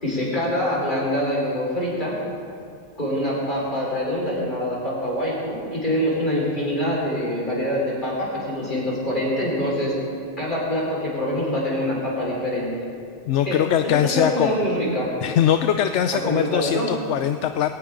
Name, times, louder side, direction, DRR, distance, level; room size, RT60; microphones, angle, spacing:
voice 1, 0.0-2.2 3.0-9.9 10.4-12.7 13.4-15.1 16.1-17.0, equal, 45° left, -5 dB, 5.1 m, -25 dB
voice 2, 13.3-14.6 15.2-17.7, left 9 dB, 80° left, 9 dB, 0.9 m, -21 dB
20.5 x 18.0 x 3.8 m, 2.4 s
omnidirectional pair, 1.2 m